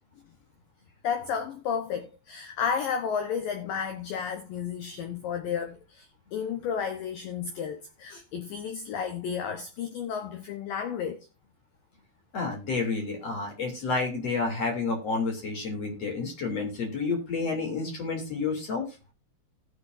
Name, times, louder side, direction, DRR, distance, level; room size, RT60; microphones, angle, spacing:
voice 1, 1.0-11.2, left 7 dB, 70° left, 2.3 m, -32 dB
voice 2, 12.3-18.9, left 4 dB, 40° left, 3.7 m, -30 dB
19.0 x 6.8 x 2.6 m
omnidirectional pair, 4.9 m